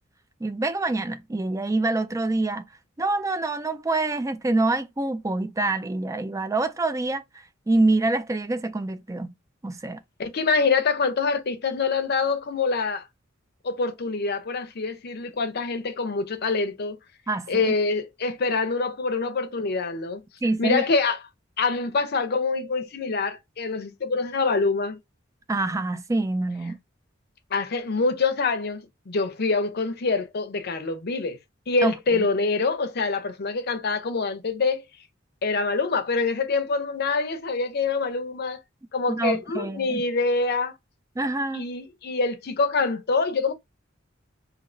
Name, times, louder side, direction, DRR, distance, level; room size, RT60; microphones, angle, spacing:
voice 1, 0.4-2.6 3.0-7.2 7.7-9.3 9.6-10.0 17.3-17.7 20.4-20.8 25.5-26.8 31.8-32.3 39.1-40.0 41.2-41.7, right 2 dB, 15° right, 0.4 m, -26 dB
voice 2, 10.2-13.0 13.6-17.0 17.5-20.2 20.6-21.2 21.6-25.0 27.5-31.4 31.7-34.8 35.4-38.6 38.9-40.7 41.5-43.5, left 4 dB, 55° left, 0.6 m, -25 dB
4.2 x 2.8 x 2.5 m
head